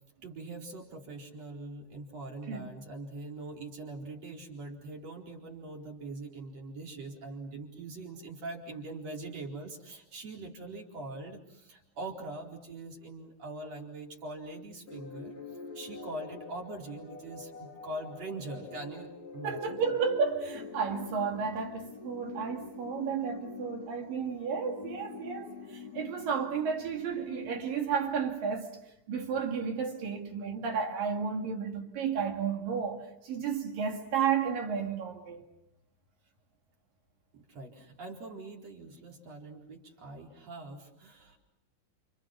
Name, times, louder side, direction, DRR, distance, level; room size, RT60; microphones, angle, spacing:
voice 1, 0.2-15.3 15.7-19.9 37.3-41.4, right 2 dB, 35° right, 4.9 m, -42 dB
sound 1, 14.9-28.6, left 4 dB, 40° left, 3.6 m, -45 dB
voice 2, 19.4-28.7 29.1-35.5, right 6 dB, 55° right, 3.0 m, -32 dB
30.0 x 29.5 x 6.0 m
omnidirectional pair, 5.9 m